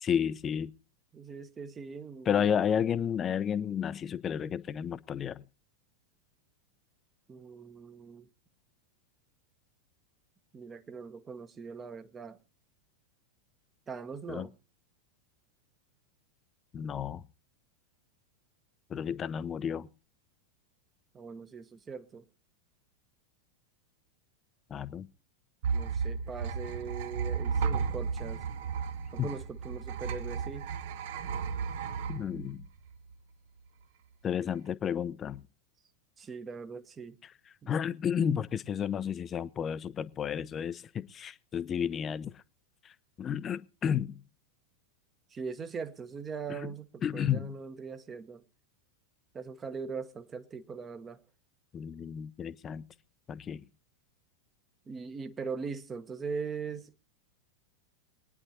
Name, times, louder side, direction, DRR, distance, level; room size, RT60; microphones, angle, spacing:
voice 1, 0.0-0.7 2.3-5.5 14.3-14.5 16.7-17.2 18.9-19.9 24.7-25.1 29.2-29.3 32.1-32.6 34.2-35.4 37.7-42.3 42.8-42.9 43.2-44.2 46.5-46.7 47.0-47.6 51.7-52.8 53.3-53.6, left 8 dB, 25° left, 0.6 m, -32 dB
voice 2, 1.1-2.5 7.3-8.3 10.5-12.4 13.9-14.5 21.1-22.2 25.7-28.5 29.1-30.7 36.2-37.2 37.6-37.7 45.3-48.4 49.3-51.2 54.9-56.9, right 5 dB, 20° right, 1.0 m, -41 dB
sound 1, 25.6-33.1, right 6 dB, 50° right, 0.8 m, -34 dB
23.5 x 9.8 x 2.8 m
figure-of-eight pair, 90°, 0 cm